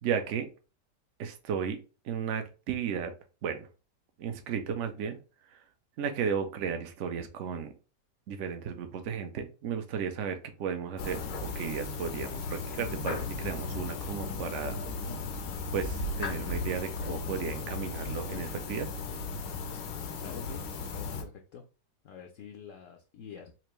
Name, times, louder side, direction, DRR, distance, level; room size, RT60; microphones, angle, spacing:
voice 1, 0.0-0.5 1.2-1.8 2.0-3.1 3.4-3.7 4.2-5.2 5.5-5.6 6.0-7.7 8.3-14.8 15.7-18.9, right 7 dB, 65° right, 7 dB, 0.7 m, -34 dB
sound 1, 11.0-21.2, left 3 dB, 85° left, 1.3 m, -36 dB
voice 2, 20.2-21.6 22.0-23.5, left 7 dB, 70° left, 3 dB, 0.7 m, -47 dB
4.4 x 2.5 x 3.0 m, 0.33 s
omnidirectional pair, 1.9 m